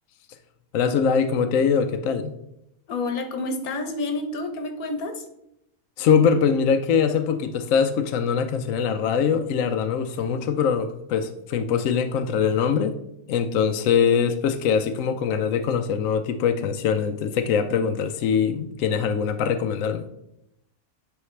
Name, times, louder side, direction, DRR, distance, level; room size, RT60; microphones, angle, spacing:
voice 1, 0.7-2.3 6.0-13.0 13.3-20.0, left 6 dB, 70° left, 7 dB, 1.0 m, -22 dB
voice 2, 2.9-5.2, left 2 dB, 90° left, 6 dB, 1.5 m, -29 dB
9.9 x 4.7 x 3.2 m, 0.80 s
omnidirectional pair, 1.5 m